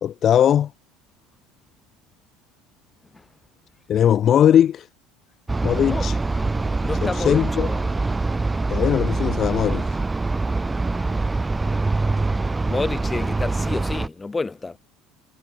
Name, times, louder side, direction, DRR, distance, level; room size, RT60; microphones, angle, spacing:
voice 1, 0.0-0.7 3.9-4.9 5.6-6.2 7.0-7.7 8.7-9.9, left 10 dB, 40° left, 0.4 m, -19 dB
sound 1, 5.5-14.1, right 3 dB, 15° right, 1.5 m, -24 dB
voice 2, 6.8-7.9 12.7-14.8, left 3 dB, 15° left, 1.2 m, -29 dB
supercardioid pair, 120°, 0 cm